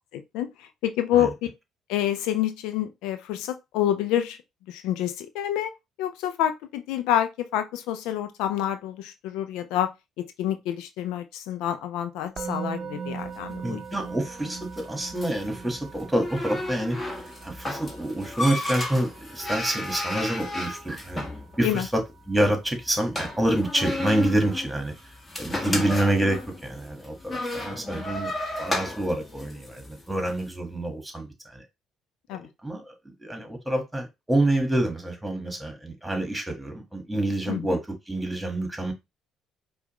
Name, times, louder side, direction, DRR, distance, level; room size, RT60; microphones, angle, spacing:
voice 1, 0.1-1.3 1.9-4.4 4.7-5.7 6.0-9.9 10.4-13.8 21.6-21.9 25.6-25.9 32.3-32.5 37.5-37.7, left 11 dB, 75° left, 0.4 m, -28 dB
Musical instrument, 12.4-23.5, right 6 dB, 45° right, 0.5 m, -41 dB
sound 1, 13.2-30.4, left 1 dB, 25° left, 1.4 m, -34 dB
voice 2, 13.6-21.3 21.6-24.9 25.4-28.3 28.6-31.6 32.6-32.9 33.2-38.9, right 1 dB, 10° right, 1.6 m, -27 dB
4.9 x 2.4 x 3.1 m
hypercardioid pair, 65°, 0 cm